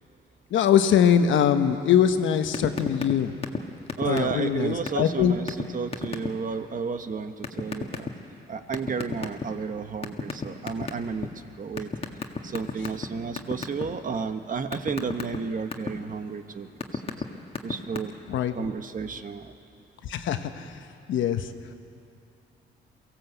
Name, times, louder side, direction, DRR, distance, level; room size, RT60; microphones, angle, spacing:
voice 1, 0.5-3.3 4.0-5.4 18.3-18.5 20.0-20.8 21.1-21.5, left 9 dB, 75° left, 8 dB, 1.2 m, -22 dB
sound 1, 2.5-3.1 3.4-3.6 3.9-4.5 4.9-5.0 5.5-5.6 5.9-6.3 7.4-8.1 8.7-9.6 10.0-11.3 11.8-13.1 13.4-13.8 14.2-15.9 16.5-17.2 17.5-18.0, left 4 dB, 30° left, 1.7 m, -30 dB
voice 2, 4.0-8.1 8.5-11.3 11.6-11.9 12.4-17.0 17.6-19.5, right 5 dB, 40° right, 8 dB, 1.2 m, -32 dB
23.0 x 16.0 x 8.0 m, 2.7 s
cardioid pair, 90°, 20 cm